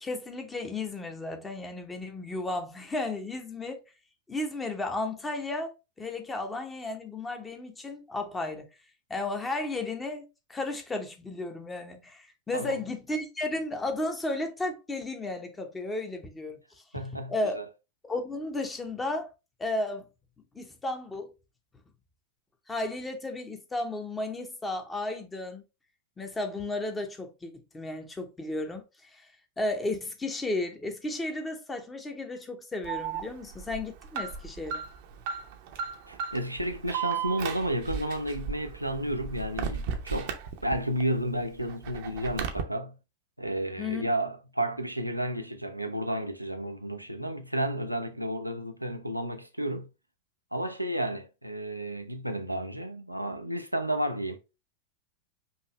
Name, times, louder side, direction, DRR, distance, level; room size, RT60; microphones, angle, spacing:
voice 1, 0.0-3.8 4.3-8.7 9.1-10.2 10.5-16.6 17.3-17.6 18.0-19.3 19.6-20.1 20.5-21.3 22.7-25.6 26.2-29.3 29.6-34.8 43.8-44.1, left 2 dB, 15° left, 1.0 m, -34 dB
voice 2, 16.9-17.6 36.1-40.3 40.6-43.0 43.4-49.9 50.5-54.4, right 1 dB, 90° right, 0.5 m, -32 dB
Alarm, 32.8-41.0 41.4-42.6, right 7 dB, 50° right, 0.8 m, -35 dB
5.4 x 2.8 x 3.2 m
figure-of-eight pair, 90°, 0 cm